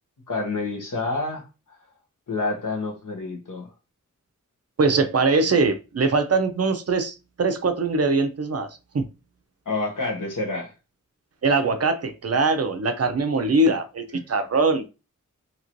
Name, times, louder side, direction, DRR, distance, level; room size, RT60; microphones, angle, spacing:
voice 1, 0.3-1.8 2.3-3.7 9.7-10.7, left 3 dB, 75° left, 1.1 m, -28 dB
voice 2, 4.8-8.7 8.9-9.0 11.4-14.9, right 3 dB, 50° right, 0.5 m, -22 dB
3.0 x 2.9 x 2.5 m
wide cardioid pair, 85°, 32 cm